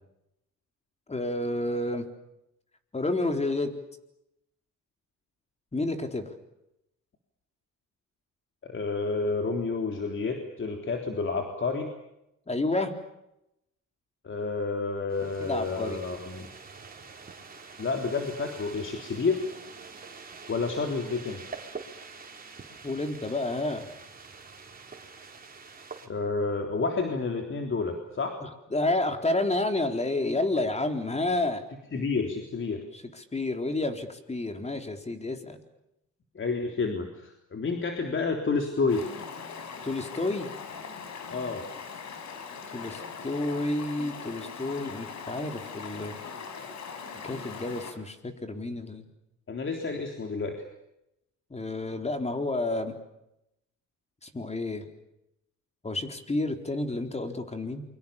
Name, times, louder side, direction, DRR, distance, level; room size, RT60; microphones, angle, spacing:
voice 1, 1.1-2.1 2.9-3.7 5.7-6.3 12.5-12.9 15.4-16.0 22.8-23.9 28.7-31.6 32.9-35.6 39.8-40.5 42.7-46.2 47.2-49.1 51.5-52.9 54.2-54.9 55.8-57.8, left 2 dB, 20° left, 6 dB, 4.0 m, -30 dB
voice 2, 8.6-11.9 14.2-16.5 17.8-19.4 20.5-21.4 26.0-28.4 31.9-32.8 36.4-39.0 41.3-41.6 49.5-50.5, left 4 dB, 40° left, 4 dB, 3.6 m, -30 dB
sound 1, 15.1-26.1, right 5 dB, 30° right, 4.6 m, -46 dB
Stream, 38.9-47.9, left 6 dB, 65° left, 4.7 m, -41 dB
28.5 x 24.5 x 7.2 m, 0.85 s
cardioid pair, 90°, 30 cm